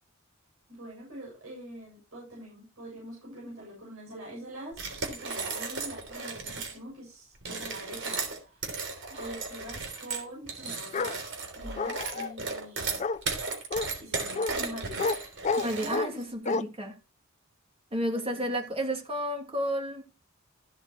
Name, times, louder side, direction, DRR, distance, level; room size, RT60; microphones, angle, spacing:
voice 1, 0.7-8.8 9.1-11.2 11.6-13.0 14.0-15.2 15.8-16.2 18.0-18.4, right 1 dB, 85° right, 7.8 m, -44 dB
sound 1, 4.7-6.8 7.4-16.2, right 4 dB, 60° right, 3.3 m, -35 dB
Bark, 10.9-11.2 11.8-12.3 13.0-13.2 13.7-13.9 14.4-14.5 15.0-15.2 15.4-16.1 16.5-16.6, left 4 dB, 35° left, 0.4 m, -29 dB
voice 2, 15.6-17.0 17.9-20.0, equal, 30° right, 2.8 m, -32 dB
15.0 x 7.8 x 3.1 m
head